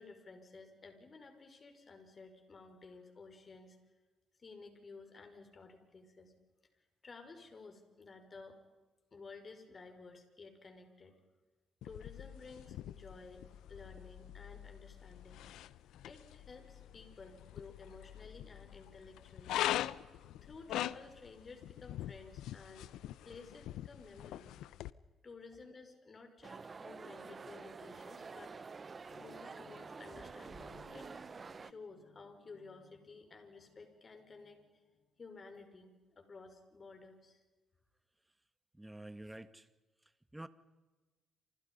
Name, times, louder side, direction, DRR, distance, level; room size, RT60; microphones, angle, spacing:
voice 1, 0.0-3.8 4.4-6.3 7.0-8.6 9.1-11.2 11.8-13.4 13.7-15.4 16.0-20.0 20.4-22.9 23.2-24.6 25.2-28.6 29.2-31.1 31.6-34.6 35.2-37.4, left 4 dB, 35° left, 6 dB, 5.5 m, -54 dB
sound 1, 11.8-24.9, left 13 dB, 85° left, 0.7 m, -43 dB
sound 2, 26.4-31.7, right 4 dB, 35° right, 0.8 m, -49 dB
sound 3, 29.1-35.3, left 4 dB, 55° left, 5.9 m, -64 dB
voice 2, 38.7-39.7 40.0-40.5, right 1 dB, 10° right, 12 dB, 1.7 m, -49 dB
29.0 x 28.0 x 5.5 m, 1.2 s
cardioid pair, 90°, 0 cm